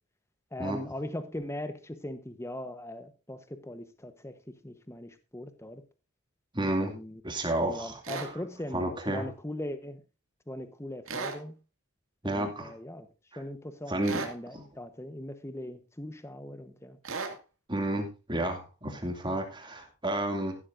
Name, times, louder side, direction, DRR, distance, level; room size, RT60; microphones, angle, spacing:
voice 1, 0.5-4.3 4.6-5.8 6.7-7.2 7.7-8.8 9.1-10.0 10.5-11.6 12.2-13.1 13.4-17.0, left 1 dB, 10° left, 9 dB, 1.0 m, -40 dB
voice 2, 6.5-6.9 7.2-8.4 8.7-9.3 12.2-12.7 13.3-13.4 13.9-14.7 17.7-20.6, right 1 dB, 20° right, 4 dB, 2.5 m, -31 dB
sound 1, 8.0-8.3 11.1-11.4 14.0-14.4 17.0-17.4, right 4 dB, 65° right, 2.3 m, -35 dB
14.5 x 12.5 x 2.6 m, 0.30 s
head